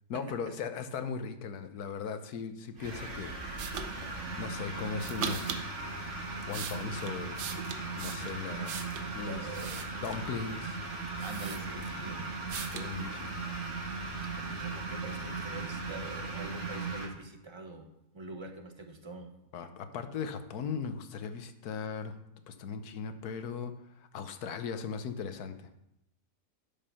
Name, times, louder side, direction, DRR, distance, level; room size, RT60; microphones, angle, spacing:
voice 1, 0.1-3.4 3.8-5.5 6.5-7.6 8.0-8.9 9.1-9.5 10.0-10.8 12.6-13.4 19.5-22.2 22.5-25.7, left 6 dB, 70° left, 9 dB, 1.3 m, -38 dB
sound 1, 2.8-17.1, right 3 dB, 45° right, 1.8 m, -38 dB
sound 2, 3.6-3.9 5.0-5.7 6.2-9.1 9.5-10.3 10.9-11.0 11.2-12.1 12.5-12.9, right 7 dB, 85° right, 1.5 m, -40 dB
voice 2, 9.2-9.9 11.2-12.3 14.4-17.9 18.1-19.3, right 3 dB, 20° right, 5 dB, 0.8 m, -44 dB
12.0 x 5.4 x 5.6 m, 0.84 s
omnidirectional pair, 1.8 m